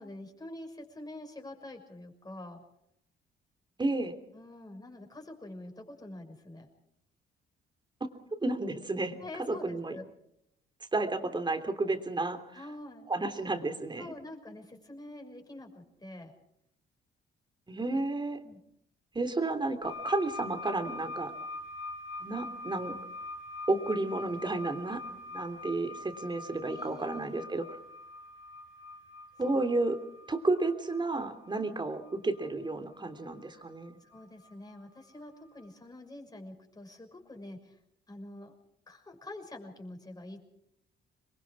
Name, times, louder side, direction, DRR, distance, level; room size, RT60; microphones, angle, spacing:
voice 1, 0.0-2.6 4.3-6.7 9.2-10.1 12.5-13.3 14.0-16.3 18.4-18.6 26.6-27.4 29.5-29.6 33.5-33.6 34.0-37.8 38.1-38.5 38.9-40.4, left 1 dB, 20° left, 3 dB, 6.3 m, -46 dB
voice 2, 3.8-4.1 8.4-9.2 9.5-10.0 10.9-12.4 13.1-14.1 17.7-18.4 19.1-21.3 22.2-22.9 23.7-25.0 25.3-27.6 29.4-30.0 30.3-33.9, right 2 dB, 20° right, 7 dB, 3.2 m, -31 dB
sound 1, 19.8-34.7 35.6-35.7, left 2 dB, 90° left, 4.5 m, -44 dB
27.0 x 22.5 x 4.9 m, 0.74 s
cardioid pair, 90°, 20 cm